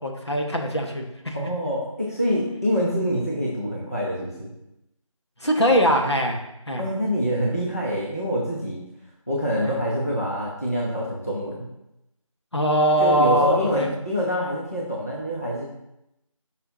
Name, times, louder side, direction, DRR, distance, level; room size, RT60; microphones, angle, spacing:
voice 1, 0.0-1.5 5.4-6.4 6.7-6.8 9.6-9.7 12.5-13.9, equal, 55° left, 1 dB, 1.2 m, -21 dB
voice 2, 1.3-4.5 6.8-8.8 9.3-11.7 13.0-15.6, equal, 25° left, -4 dB, 0.8 m, -26 dB
8.1 x 5.7 x 2.7 m, 0.87 s
figure-of-eight pair, 180°, 18 cm